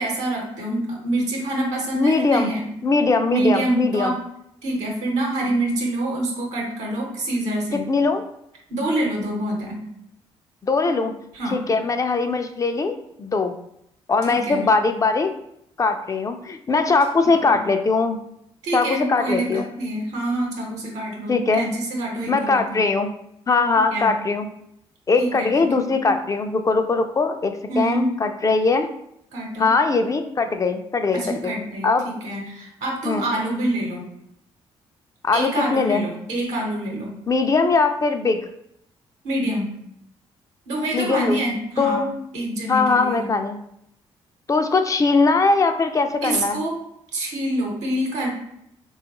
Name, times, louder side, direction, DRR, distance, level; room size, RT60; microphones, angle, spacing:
voice 1, 0.0-2.6 3.3-4.2 4.6-7.8 8.7-9.8 11.3-11.6 14.3-14.6 17.2-17.6 18.6-22.8 23.7-24.1 25.2-25.9 27.7-28.1 29.3-29.7 31.1-34.1 35.3-37.1 39.2-39.7 40.7-42.0 42.3-43.3 46.2-46.8 47.1-48.3, right 1 dB, 85° right, 0 dB, 0.9 m, -26 dB
voice 2, 1.9-2.5 2.8-4.1 7.7-8.2 10.6-11.1 11.5-13.6 14.1-15.3 15.8-18.2 18.7-19.6 21.3-21.7 22.3-23.1 23.5-24.5 25.1-28.9 29.6-31.5 31.8-32.1 33.0-33.3 35.2-36.1 37.3-38.5 40.9-41.4 41.8-42.1 42.7-43.6 44.5-46.6, left 4 dB, 30° left, 6 dB, 0.3 m, -21 dB
3.5 x 2.3 x 2.9 m, 0.77 s
supercardioid pair, 65°, 11 cm